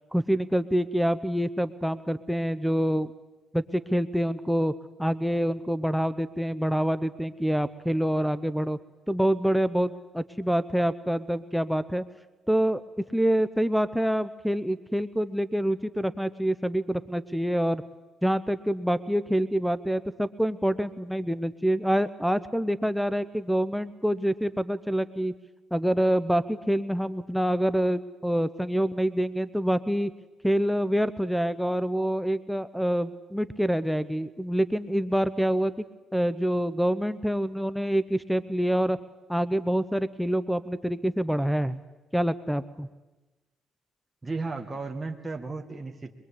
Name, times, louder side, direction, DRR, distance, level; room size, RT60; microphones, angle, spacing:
voice 1, 0.1-3.1 3.5-4.7 5.0-8.8 9.1-12.0 12.5-12.8 13.1-17.8 18.2-25.3 25.7-30.1 30.4-35.8 36.1-39.0 39.3-41.8 42.1-42.9, equal, ahead, 11 dB, 0.7 m, -26 dB
voice 2, 44.2-46.1, right 3 dB, 20° right, 2 dB, 1.7 m, -34 dB
23.5 x 22.0 x 8.6 m, 1.1 s
cardioid pair, 90°, 0 cm